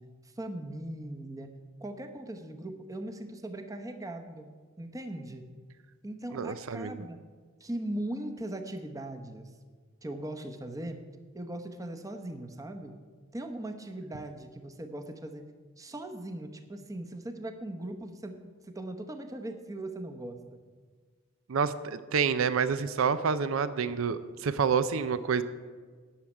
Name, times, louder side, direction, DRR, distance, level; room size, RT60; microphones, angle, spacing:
voice 1, 0.0-4.5 4.8-5.4 6.0-7.2 7.6-9.5 10.0-11.0 11.3-13.0 13.3-15.5 15.8-20.4, right 1 dB, 15° right, 6 dB, 0.9 m, -39 dB
voice 2, 6.3-7.0 21.5-25.4, right 6 dB, 70° right, 14 dB, 0.5 m, -28 dB
10.5 x 6.4 x 8.9 m, 1.5 s
head